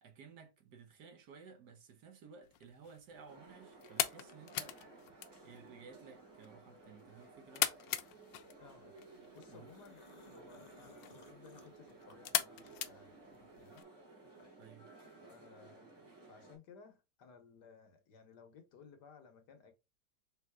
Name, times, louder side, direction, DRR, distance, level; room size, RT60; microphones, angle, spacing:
voice 1, 0.0-4.8 5.4-7.7 9.5-9.7 10.4-10.7 14.6-14.9, right 5 dB, 65° right, 1.5 m, -56 dB
sound 1, 2.4-13.8, left 12 dB, 90° left, 1.3 m, -42 dB
sound 2, 3.3-16.6, right 3 dB, 40° right, 2.3 m, -57 dB
voice 2, 8.6-13.8 15.2-19.7, left 5 dB, 70° left, 1.5 m, -59 dB
sound 3, 9.4-12.9 13.3-14.8, left 3 dB, 45° left, 0.5 m, -62 dB
5.5 x 3.7 x 2.2 m
omnidirectional pair, 1.9 m